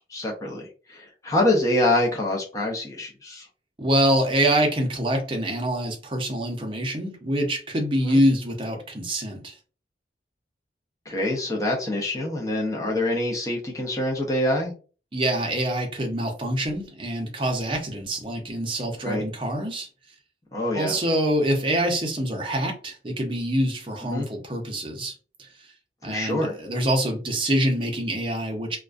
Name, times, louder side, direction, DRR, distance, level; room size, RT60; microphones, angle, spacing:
voice 1, 0.0-3.5 8.0-8.2 11.1-14.7 19.0-19.2 20.5-21.0 24.1-24.3 26.0-26.6, left 1 dB, 20° left, 0.5 m, -25 dB
voice 2, 3.8-9.5 15.1-19.9 20.7-25.1 26.0-28.8, right 1 dB, 30° right, 0.6 m, -25 dB
2.4 x 2.1 x 2.4 m
head